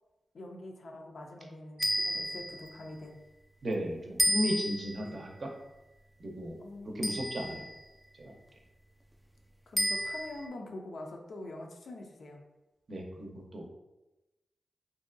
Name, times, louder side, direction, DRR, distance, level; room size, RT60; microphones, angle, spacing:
voice 1, 0.3-3.2 5.0-5.2 6.6-7.6 9.7-12.4, left 1 dB, 70° left, 2 dB, 0.4 m, -45 dB
sound 1, 1.8-2.7 4.2-5.0 7.0-7.7 9.8-10.4, equal, ahead, 0.3 m, -31 dB
voice 2, 3.6-5.5 6.2-6.6 6.9-7.6 8.2-8.3 12.9-13.7, equal, 60° right, 1 dB, 0.5 m, -35 dB
2.6 x 2.2 x 2.4 m, 1.0 s
cardioid pair, 45°, 0 cm